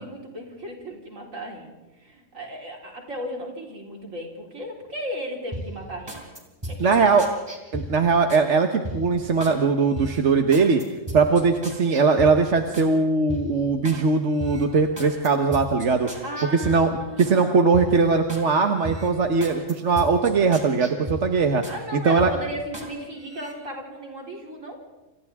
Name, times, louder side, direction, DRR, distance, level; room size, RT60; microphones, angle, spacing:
voice 1, 0.0-1.7 2.0-6.2 6.7-6.9 16.2-17.7 21.7-24.8, equal, 85° right, 0 dB, 4.6 m, -35 dB
sound 1, 5.5-8.5 8.8-9.6 9.9-12.9 13.3-14.0 14.4-17.4 17.7-18.5 18.8-21.8 22.2-22.9 23.3-23.5, right 1 dB, 20° right, 3.9 m, -36 dB
voice 2, 6.8-7.3 7.7-10.8 11.1-16.2 16.5-16.9 17.2-21.6 22.0-22.3, right 4 dB, 65° right, 5 dB, 1.6 m, -20 dB
29.0 x 27.0 x 3.6 m, 1.1 s
omnidirectional pair, 1.3 m